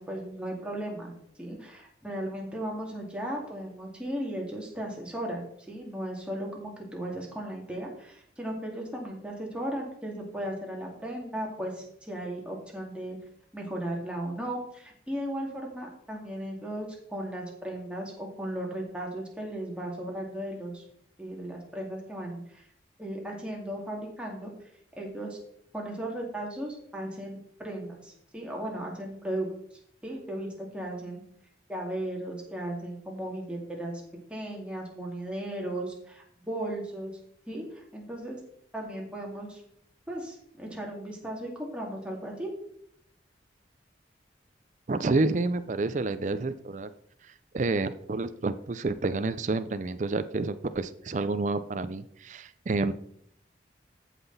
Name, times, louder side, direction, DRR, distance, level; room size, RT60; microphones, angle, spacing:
voice 1, 0.0-13.2 13.5-20.8 21.2-22.6 23.0-24.5 25.0-25.4 25.7-29.5 30.0-31.2 31.7-33.9 34.3-37.1 37.5-38.4 38.7-39.6 40.1-42.5, right 1 dB, 5° right, -1 dB, 2.2 m, -36 dB
voice 2, 44.9-46.9 47.5-52.9, right 3 dB, 40° right, 11 dB, 0.4 m, -29 dB
13.5 x 5.9 x 4.0 m, 0.69 s
head